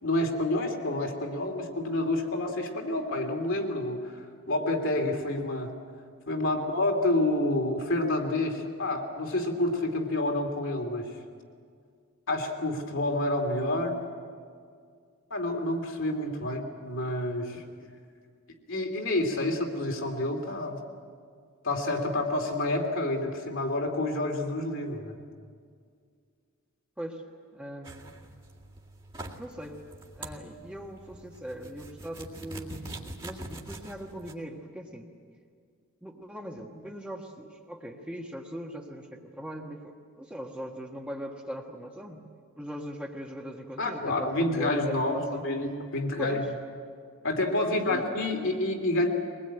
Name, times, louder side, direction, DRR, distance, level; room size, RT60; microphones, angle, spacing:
voice 1, 0.0-4.1 4.5-5.7 6.3-11.1 12.3-14.0 15.3-17.6 18.7-20.8 21.6-25.2 43.8-46.5 47.2-49.1, left 1 dB, 60° left, 3 dB, 2.9 m, -28 dB
voice 2, 27.5-28.2 29.4-29.8 30.1-35.1 36.0-42.3 42.6-45.5 46.2-46.5 47.7-48.0, equal, 5° right, 0 dB, 1.5 m, -40 dB
sound 1, 27.8-34.3, right 1 dB, 25° right, 2.1 m, -44 dB
23.0 x 20.0 x 9.0 m, 2.1 s
head